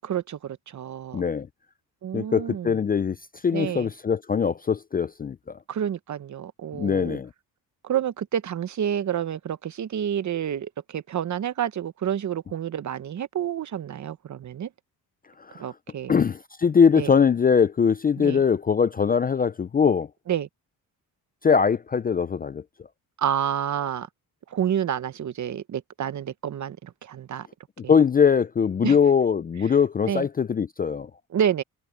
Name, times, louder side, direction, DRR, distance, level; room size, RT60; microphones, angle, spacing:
voice 1, 0.0-1.2 2.0-2.8 3.5-3.9 5.7-7.2 7.8-14.7 15.6-16.1 17.0-17.1 18.2-18.4 20.3-20.5 23.2-24.1 24.5-27.5 28.8-29.0 30.1-30.3 31.3-31.6, right 9 dB, 50° right, 1.0 m, -29 dB
voice 2, 1.1-1.5 2.1-3.2 3.4-5.6 6.7-7.3 15.4-15.7 16.1-20.1 21.4-22.9 27.9-31.1, left 6 dB, 25° left, 0.4 m, -22 dB
cardioid pair, 110°, 37 cm